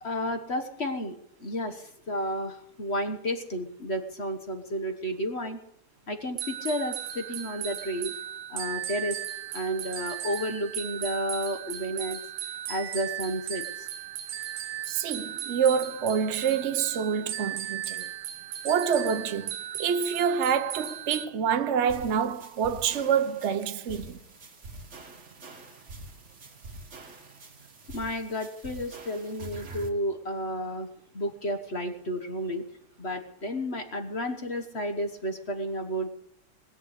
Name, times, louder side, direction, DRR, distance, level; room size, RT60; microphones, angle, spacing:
voice 1, 0.0-5.6 6.1-8.1 8.5-9.2 9.5-12.2 12.7-13.9 27.9-30.9 31.1-32.6 33.0-36.1, equal, 35° left, 1.2 m, -32 dB
sound 1, 6.4-21.3, right 11 dB, 90° right, 1.8 m, -36 dB
voice 2, 14.9-18.1 18.6-19.5 19.8-24.2, right 7 dB, 70° right, 0.6 m, -27 dB
sound 2, 21.9-29.9, right 2 dB, 35° right, 1.8 m, -45 dB
20.0 x 7.3 x 8.2 m
omnidirectional pair, 2.4 m